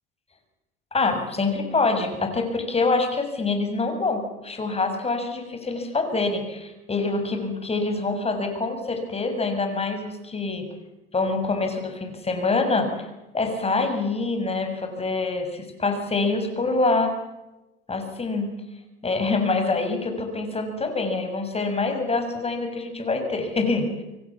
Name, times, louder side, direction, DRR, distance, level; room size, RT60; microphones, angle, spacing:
voice 1, 0.9-10.7 11.1-13.1 13.3-17.2 17.9-18.5 19.0-24.0, left 3 dB, 20° left, 6 dB, 6.5 m, -25 dB
27.0 x 23.5 x 7.3 m, 0.99 s
hypercardioid pair, 85°, 29 cm